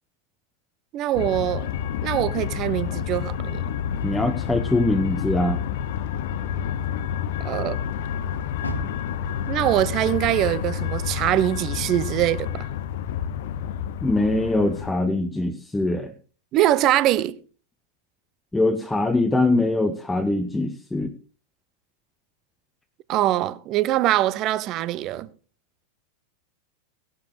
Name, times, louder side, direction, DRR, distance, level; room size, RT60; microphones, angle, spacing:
voice 1, 0.9-1.7 2.0-3.6 7.4-7.8 9.5-12.7 16.5-17.4 23.1-25.3, right 14 dB, 35° right, 0.7 m, -23 dB
sound 1, 1.1-14.9, left 9 dB, 55° left, 0.6 m, -29 dB
voice 2, 4.0-5.6 14.0-16.1 18.5-21.1, left 2 dB, 5° left, 0.9 m, -22 dB
Car, 8.6-11.9 12.3-13.6 14.1-14.2 14.8-14.9, right 1 dB, 85° left, 2.3 m, -40 dB
17.0 x 12.0 x 3.2 m
figure-of-eight pair, 90°, 0 cm